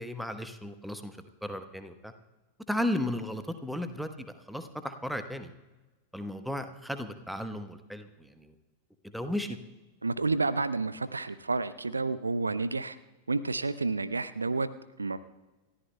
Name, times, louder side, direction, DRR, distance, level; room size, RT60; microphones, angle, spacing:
voice 1, 0.0-2.1 2.7-5.5 6.1-8.5 9.0-9.6, left 1 dB, ahead, 8 dB, 1.0 m, -35 dB
voice 2, 10.0-13.0 13.3-14.7 15.0-15.2, right 3 dB, 80° right, 15 dB, 0.5 m, -30 dB
29.0 x 14.0 x 2.2 m, 1.2 s
figure-of-eight pair, 90°, 0 cm